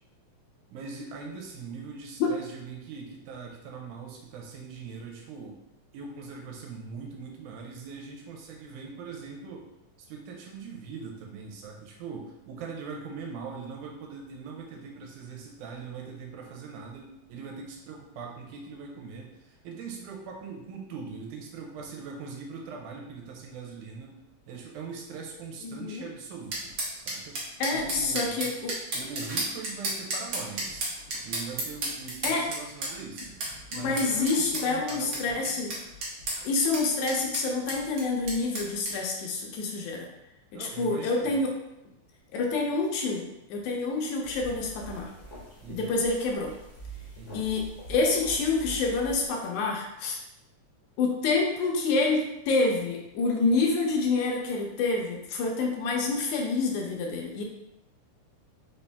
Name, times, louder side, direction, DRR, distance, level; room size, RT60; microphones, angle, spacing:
voice 1, 0.7-5.6 5.9-9.7 10.0-24.2 24.5-28.5 28.9-30.9 31.2-33.4 33.7-35.6 40.5-41.4 45.6-46.0 47.1-47.5, right 5 dB, 80° right, 0 dB, 2.2 m, -41 dB
voice 2, 25.6-26.1 27.6-28.8 32.2-32.5 33.7-35.7 36.4-40.1 40.5-41.5 42.3-43.2 43.5-45.1 45.7-46.5 47.3-50.2 51.0-57.4, left 3 dB, 80° left, 0 dB, 1.9 m, -27 dB
sound 1, 26.5-38.9, right 2 dB, 60° right, 1.4 m, -33 dB
sound 2, 44.2-49.3, right 3 dB, 60° left, 0.7 m, -44 dB
5.1 x 2.7 x 3.4 m, 0.89 s
omnidirectional pair, 3.6 m